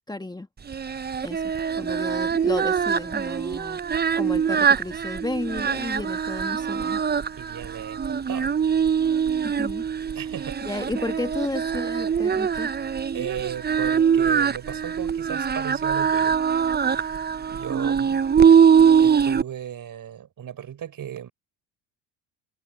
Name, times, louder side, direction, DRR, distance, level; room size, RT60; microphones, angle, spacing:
voice 1, 0.1-0.5 1.2-1.4 1.7-3.8 4.2-7.0 9.4-9.8 10.6-12.7, left 2 dB, 10° left, 1.7 m, -32 dB
Singing, 0.7-19.4, right 7 dB, 20° right, 0.9 m, -22 dB
voice 2, 7.4-8.5 10.1-10.9 13.1-17.2 17.5-18.2 18.8-21.3, right 9 dB, 45° right, 4.1 m, -36 dB
hypercardioid pair, 65°, 46 cm